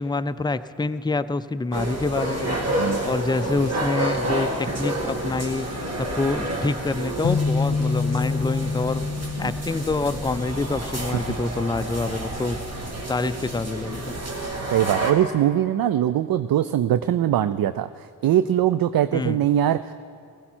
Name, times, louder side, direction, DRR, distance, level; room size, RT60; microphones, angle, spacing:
voice 1, 0.0-9.0 9.4-14.1 19.1-19.4, left 3 dB, 10° left, 13 dB, 0.4 m, -27 dB
sound 1, 1.7-15.1, right 1 dB, 35° right, 2.2 m, -29 dB
sound 2, 7.2-11.3, left 4 dB, 45° left, 0.8 m, -27 dB
voice 2, 14.7-19.9, right 11 dB, 55° right, 13 dB, 0.5 m, -22 dB
15.5 x 15.5 x 4.4 m, 2.3 s
cardioid pair, 60°, 42 cm